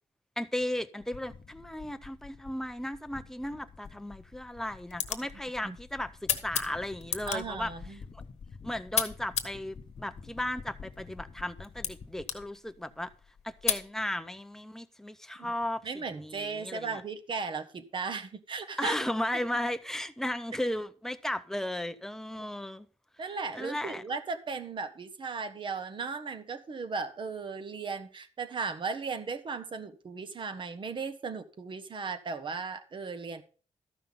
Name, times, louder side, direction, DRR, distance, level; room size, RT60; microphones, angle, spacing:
voice 1, 0.4-7.7 8.1-8.2 8.6-13.1 13.4-17.0 18.8-22.9 23.5-24.0, left 1 dB, 5° left, 0.5 m, -35 dB
sound 1, 1.0-12.4, left 5 dB, 40° left, 0.8 m, -49 dB
sound 2, 3.8-13.9, left 8 dB, 65° left, 1.1 m, -37 dB
voice 2, 7.3-8.0 15.4-15.5 15.8-19.0 23.2-33.4, right 4 dB, 40° right, 1.1 m, -36 dB
13.5 x 5.6 x 5.4 m
wide cardioid pair, 145°, 12 cm